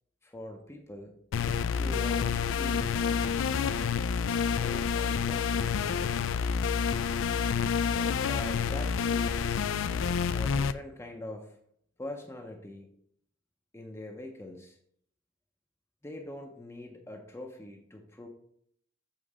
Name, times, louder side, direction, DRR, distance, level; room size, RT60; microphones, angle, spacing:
voice 1, 0.2-1.2 1.8-4.0 4.5-5.9 7.9-9.7 10.3-11.6 12.0-12.9 13.7-14.8 16.0-18.3, left 1 dB, 15° left, 2 dB, 0.6 m, -43 dB
sound 1, 1.3-10.7, left 6 dB, 80° left, 0.4 m, -28 dB
7.2 x 3.8 x 4.9 m, 0.67 s
head